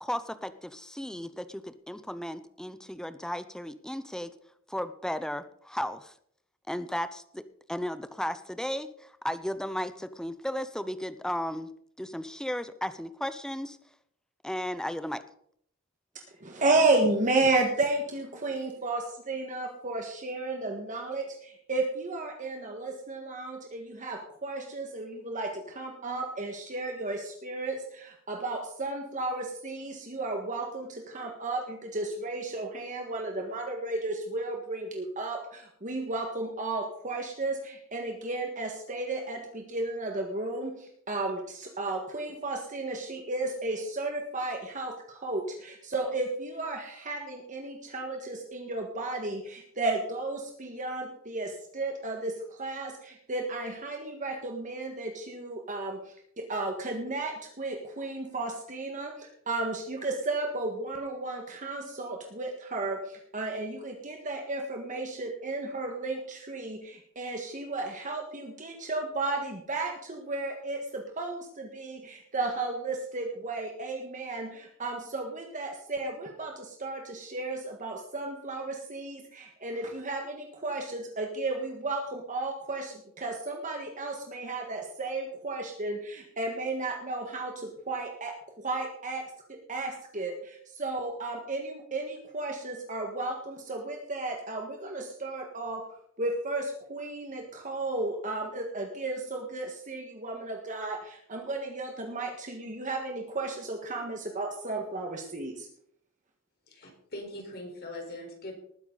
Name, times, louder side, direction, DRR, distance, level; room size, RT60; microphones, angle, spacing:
voice 1, 0.0-4.3 4.7-6.1 6.7-7.4 7.7-11.7 12.0-13.8 14.4-15.2, equal, 5° left, 12 dB, 0.7 m, -35 dB
voice 2, 16.4-89.2 89.5-95.8 96.2-105.7, right 2 dB, 35° right, 2 dB, 1.7 m, -33 dB
voice 3, 106.7-108.5, left 1 dB, 50° left, 2 dB, 4.4 m, -41 dB
19.5 x 9.9 x 4.0 m, 0.67 s
head